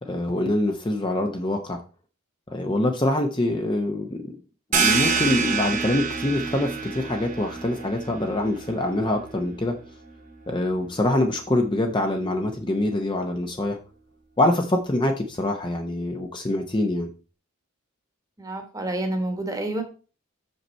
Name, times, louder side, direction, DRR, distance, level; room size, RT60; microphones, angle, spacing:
voice 1, 0.0-1.8 2.5-4.3 4.7-9.8 10.5-13.8 14.4-17.1, left 1 dB, 20° left, 4 dB, 0.7 m, -25 dB
sound 1, 4.7-10.1, right 5 dB, 35° right, 1.1 m, -27 dB
voice 2, 18.4-19.8, right 1 dB, 15° right, 5 dB, 1.2 m, -28 dB
6.6 x 5.4 x 4.3 m, 0.36 s
head